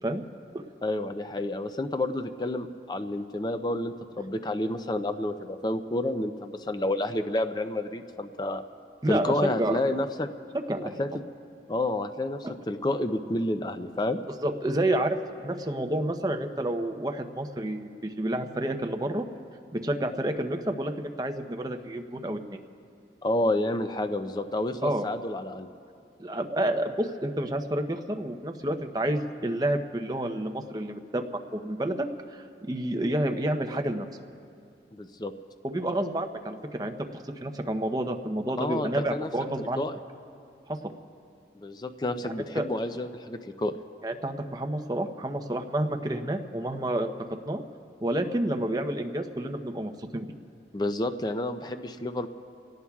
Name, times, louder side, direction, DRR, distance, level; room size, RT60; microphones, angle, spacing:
voice 1, 0.8-8.6 9.1-10.3 11.0-11.1 11.7-14.2 23.2-25.7 34.9-35.3 38.6-39.3 39.8-40.0 41.5-43.8 50.7-52.3, left 1 dB, 25° left, 8 dB, 0.5 m, -29 dB
voice 2, 9.0-9.8 10.5-11.0 14.4-19.3 19.7-22.6 24.8-25.1 26.2-34.1 35.6-39.8 40.7-40.8 42.2-42.7 44.0-47.1 47.4-47.6 48.0-50.3, right 1 dB, 20° right, 5 dB, 0.8 m, -29 dB
30.0 x 18.0 x 2.4 m, 2.4 s
head